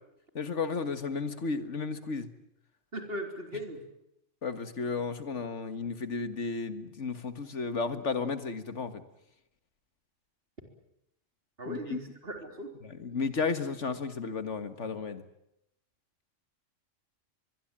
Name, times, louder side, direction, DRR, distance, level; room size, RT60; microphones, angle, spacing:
voice 1, 0.4-2.3 4.4-9.0 11.7-12.0 12.8-15.2, left 4 dB, 70° left, 11 dB, 2.0 m, -33 dB
voice 2, 2.9-3.8 11.6-12.7, equal, 50° right, 5 dB, 4.1 m, -38 dB
23.0 x 22.5 x 8.9 m, 0.81 s
omnidirectional pair, 1.3 m